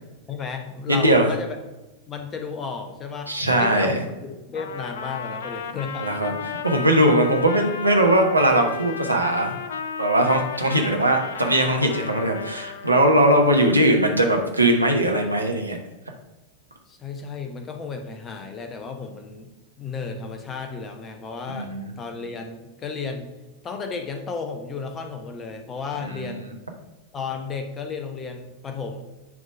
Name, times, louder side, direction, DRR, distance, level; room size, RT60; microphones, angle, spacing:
voice 1, 0.3-1.6 2.1-6.1 16.9-19.5 19.8-23.3 23.6-26.5 27.1-29.0, left 5 dB, 25° left, 5 dB, 1.0 m, -33 dB
voice 2, 0.9-1.3 3.3-4.0 6.0-9.6 10.0-15.8 21.5-21.9 26.0-26.5, right 1 dB, 85° right, 2 dB, 1.1 m, -20 dB
Trumpet, 4.5-13.0, left 7 dB, 60° left, 0.5 m, -34 dB
9.5 x 3.2 x 5.3 m, 1.1 s
figure-of-eight pair, 90°, 0 cm